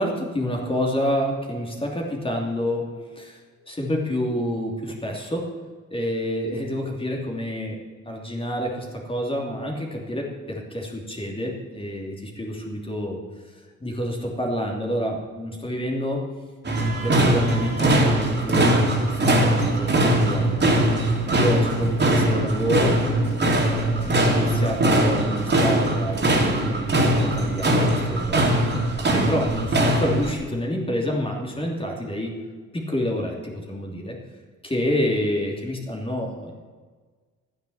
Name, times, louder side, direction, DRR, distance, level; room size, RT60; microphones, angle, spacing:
voice 1, 0.0-2.9 3.2-3.4 3.7-5.5 5.9-7.8 8.1-13.2 13.8-16.2 16.8-20.7 21.3-23.0 23.5-28.5 29.1-32.3 32.7-34.1 34.6-36.5, equal, 20° left, 0 dB, 3.0 m, -28 dB
sound 1, 16.6-30.3, right 1 dB, 35° right, 3.1 m, -21 dB
13.0 x 9.7 x 8.1 m, 1.5 s
cardioid pair, 90°, 30 cm